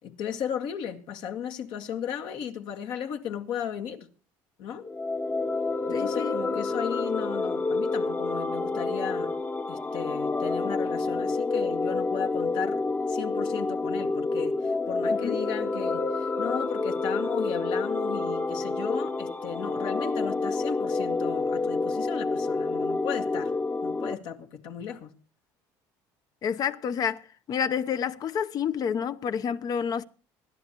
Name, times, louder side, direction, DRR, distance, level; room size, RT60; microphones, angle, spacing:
voice 1, 0.0-4.1 4.6-4.8 5.8-9.3 9.7-12.8 13.1-23.5 23.8-25.1, left 8 dB, 70° left, 2.0 m, -35 dB
sound 1, 4.8-24.1, left 3 dB, 20° left, 1.0 m, -28 dB
voice 2, 5.9-6.6 15.1-15.4 26.4-27.2 27.5-30.0, left 7 dB, 50° left, 0.9 m, -29 dB
25.5 x 11.5 x 3.1 m
cardioid pair, 110°, 8 cm